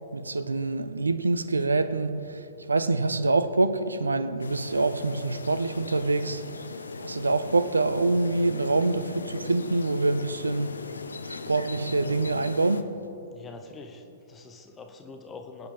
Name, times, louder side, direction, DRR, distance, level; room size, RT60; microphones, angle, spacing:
voice 1, 0.1-10.8 11.3-12.9, right 3 dB, 75° right, 0.6 m, -26 dB
sound 1, 4.4-12.8, left 4 dB, 70° left, 0.7 m, -39 dB
voice 2, 13.3-15.7, left 4 dB, 15° left, 0.8 m, -44 dB
21.5 x 8.8 x 3.8 m
figure-of-eight pair, 115°, 0 cm